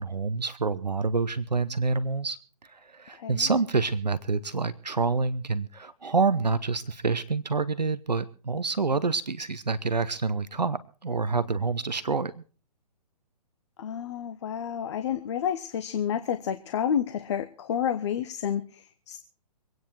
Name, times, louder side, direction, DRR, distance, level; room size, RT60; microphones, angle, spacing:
voice 1, 0.0-2.4 2.7-12.3, right 4 dB, 80° right, 15 dB, 1.0 m, -27 dB
voice 2, 13.8-19.2, left 8 dB, 40° left, 10 dB, 1.0 m, -30 dB
24.5 x 9.4 x 4.5 m, 0.38 s
figure-of-eight pair, 130°, 21 cm